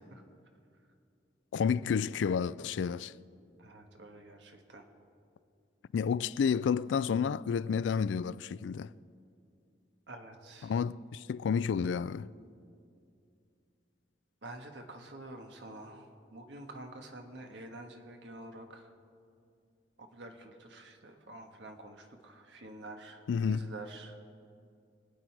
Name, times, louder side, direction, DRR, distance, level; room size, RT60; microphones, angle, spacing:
voice 1, 1.5-3.1 5.9-8.9 10.6-12.3 23.3-23.7, left 6 dB, 85° left, 0.3 m, -30 dB
voice 2, 3.6-4.8 10.1-10.8 14.4-18.9 20.0-24.2, right 2 dB, 80° right, 1.4 m, -48 dB
23.5 x 9.2 x 4.7 m
head